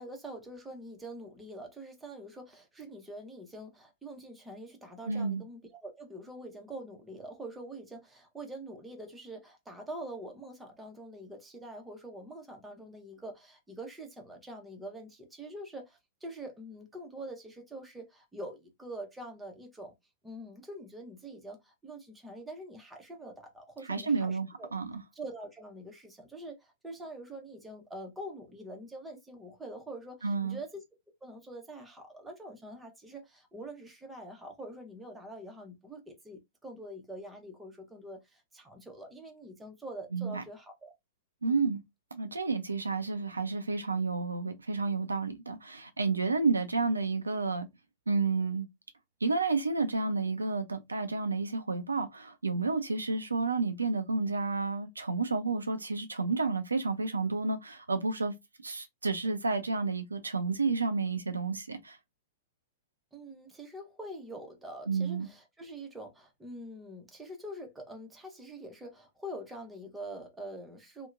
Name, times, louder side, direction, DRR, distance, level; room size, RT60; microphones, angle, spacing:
voice 1, 0.0-19.9 20.2-24.7 25.1-30.8 31.2-40.9 41.4-41.6 63.1-71.1, right 1 dB, 10° right, 0.8 m, -45 dB
voice 2, 5.1-5.4 23.9-25.0 30.2-30.6 40.1-40.4 41.4-41.8 42.1-47.7 48.1-48.7 49.2-58.3 58.6-62.0 64.9-65.3, right 4 dB, 80° right, 0.4 m, -30 dB
2.8 x 2.1 x 2.4 m
figure-of-eight pair, 105°, 0 cm